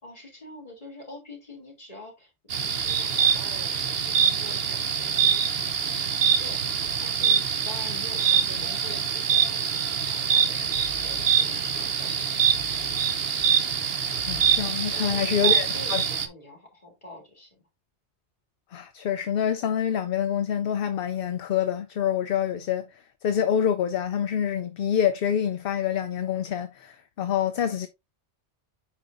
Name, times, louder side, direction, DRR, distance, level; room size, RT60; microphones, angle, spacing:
voice 1, 0.0-5.4 6.4-6.6 7.0-12.8 14.9-17.6, left 2 dB, 30° left, 3.2 m, -45 dB
sound 1, 2.5-16.3, right 7 dB, 60° right, 1.1 m, -24 dB
voice 2, 14.2-16.0 18.7-27.9, left 9 dB, 60° left, 0.7 m, -26 dB
8.4 x 5.1 x 2.6 m
omnidirectional pair, 1.2 m